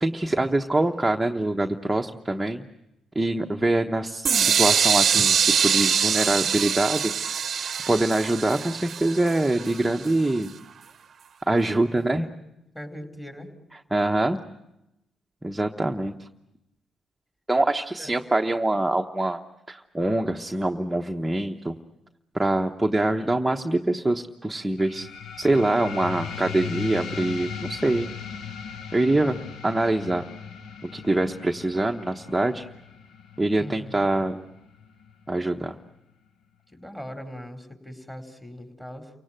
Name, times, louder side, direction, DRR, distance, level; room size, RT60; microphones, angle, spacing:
voice 1, 0.0-2.6 3.1-7.4 7.9-10.5 11.5-12.3 13.7-14.4 15.4-16.3 17.5-19.4 19.7-21.8 22.3-25.1 25.4-28.1 28.9-29.4 29.6-30.3 30.9-32.6 33.4-34.4 35.3-35.7, right 2 dB, 10° right, 3 dB, 1.1 m, -24 dB
sound 1, 4.2-10.1, right 7 dB, 50° right, 0.8 m, -23 dB
voice 2, 12.0-12.3 12.7-13.5 18.0-18.1 33.5-34.0 36.7-39.1, equal, 10° left, 5 dB, 4.6 m, -40 dB
sound 2, 24.8-35.8, left 7 dB, 70° left, 1.1 m, -38 dB
29.5 x 17.5 x 9.1 m, 0.90 s
cardioid pair, 90°, 0 cm